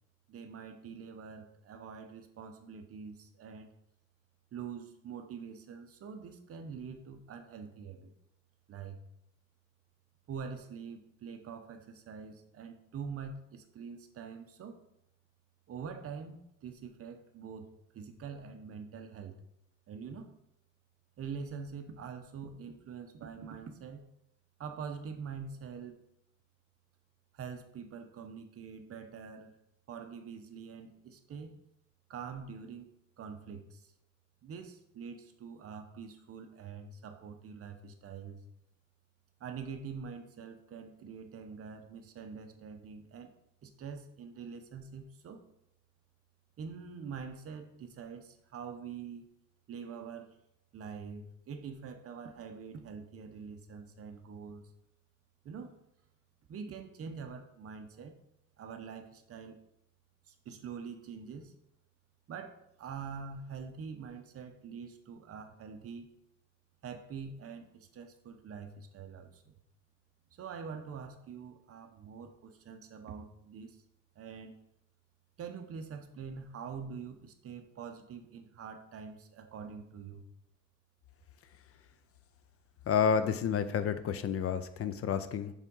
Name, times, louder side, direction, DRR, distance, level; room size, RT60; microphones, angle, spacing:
voice 1, 0.3-3.8 4.5-8.1 8.7-9.0 10.3-14.8 15.7-19.4 19.9-20.3 21.2-24.0 24.6-26.0 27.3-29.5 29.9-31.6 32.1-32.9 33.2-33.9 34.4-38.4 39.4-43.3 43.6-45.4 46.6-49.3 49.7-50.4 50.7-54.7 55.4-55.7 56.5-58.1 58.6-59.6 60.3-61.6 62.3-66.1 66.8-69.5 70.3-73.8 74.2-74.6 75.4-80.2, right 6 dB, 50° right, 6 dB, 0.8 m, -45 dB
voice 2, 82.9-85.5, left 7 dB, 50° left, 11 dB, 0.4 m, -30 dB
7.2 x 3.6 x 5.3 m, 0.77 s
cardioid pair, 180°, 30 cm